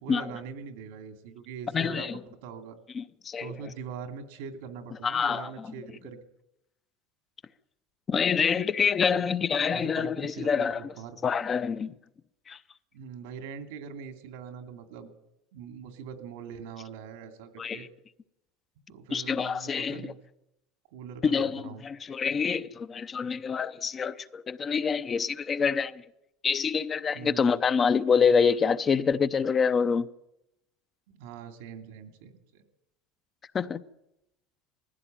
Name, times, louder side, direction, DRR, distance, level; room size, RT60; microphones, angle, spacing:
voice 1, 0.0-2.8 3.4-6.2 9.1-9.3 9.7-11.2 12.9-15.1 15.5-17.9 18.9-20.2 20.9-21.8 27.1-27.6 31.1-32.6, right 6 dB, 85° right, 2.7 m, -42 dB
voice 2, 1.7-2.2 2.9-3.5 5.0-5.5 8.1-10.8 11.2-11.9 12.5-12.6 17.6-17.9 19.1-20.0 21.2-26.0 26.4-30.1 33.5-33.8, left 6 dB, 25° left, 0.7 m, -26 dB
20.0 x 15.5 x 9.2 m
supercardioid pair, 130°, 0 cm